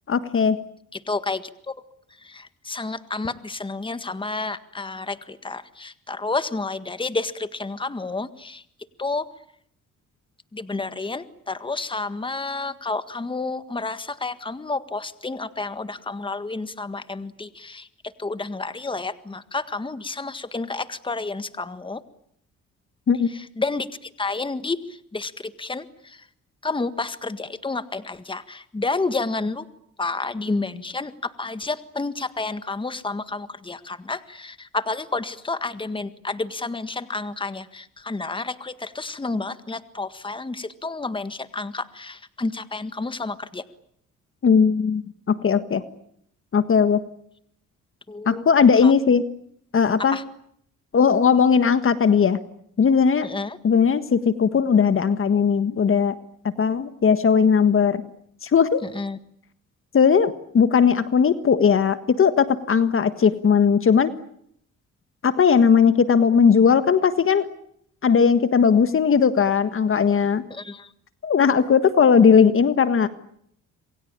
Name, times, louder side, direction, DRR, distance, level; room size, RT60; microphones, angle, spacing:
voice 1, 0.1-0.6 23.1-23.3 44.4-45.8 46.5-47.0 48.2-49.2 49.7-50.2 50.9-52.4 52.8-53.3 53.6-56.1 56.6-58.0 58.4-58.8 59.9-64.1 65.2-67.5 68.0-70.4 71.2-73.1, left 6 dB, 45° left, 12 dB, 1.6 m, -18 dB
voice 2, 0.9-1.7 2.2-8.6 9.0-9.3 10.5-17.9 18.2-22.0 23.3-26.3 26.6-29.7 30.0-43.6 48.1-48.5 48.8-48.9 50.1-50.2 53.2-53.6 58.8-59.2 70.5-70.9, left 3 dB, 15° left, 12 dB, 1.7 m, -30 dB
28.0 x 23.0 x 8.8 m, 0.70 s
cardioid pair, 90°, 30 cm